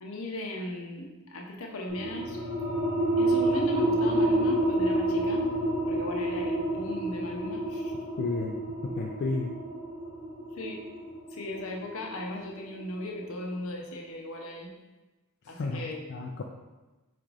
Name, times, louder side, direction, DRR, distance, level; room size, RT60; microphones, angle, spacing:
voice 1, 0.0-2.4 3.2-5.5 5.8-7.9 10.5-10.8 11.3-14.7 15.5-16.0, left 1 dB, 65° left, 0 dB, 0.7 m, -37 dB
sound 1, 1.9-13.1, right 1 dB, 90° left, 1.1 m, -29 dB
voice 2, 8.2-8.6 8.8-9.5 15.4-15.8 16.1-16.4, left 3 dB, 50° left, 0 dB, 0.3 m, -32 dB
4.2 x 2.5 x 4.7 m, 1.1 s
head